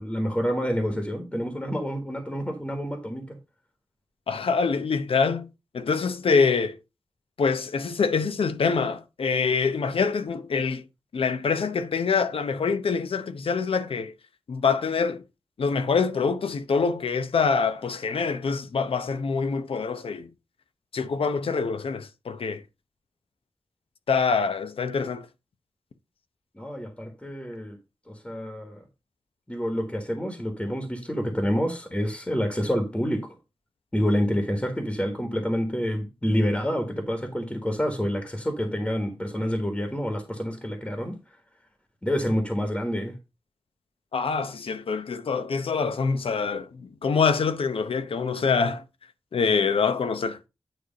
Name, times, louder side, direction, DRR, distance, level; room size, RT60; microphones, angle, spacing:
voice 1, 0.0-3.4 26.5-27.8 28.1-28.8 29.5-33.3 33.9-41.2 42.0-43.1, equal, 10° left, 1.3 m, -28 dB
voice 2, 4.3-5.5 5.7-6.8 7.4-10.8 11.1-14.1 14.5-15.2 15.6-20.3 20.9-22.6 24.1-25.3 44.1-48.8 49.3-50.4, left 5 dB, 85° left, 0.8 m, -25 dB
9.2 x 3.2 x 5.1 m
wide cardioid pair, 95°, 9 cm